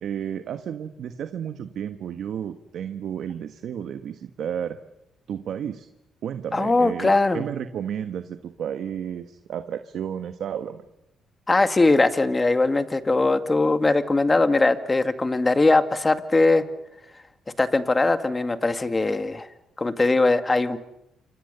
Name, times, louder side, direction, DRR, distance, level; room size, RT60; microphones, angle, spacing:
voice 1, 0.0-4.8 5.3-5.9 6.2-10.8, right 9 dB, 70° right, 9 dB, 1.4 m, -32 dB
voice 2, 6.5-7.4 11.5-16.6 17.6-19.5 19.8-20.8, left 3 dB, 20° left, 9 dB, 2.2 m, -20 dB
28.5 x 26.0 x 6.9 m, 0.85 s
cardioid pair, 90°, 0 cm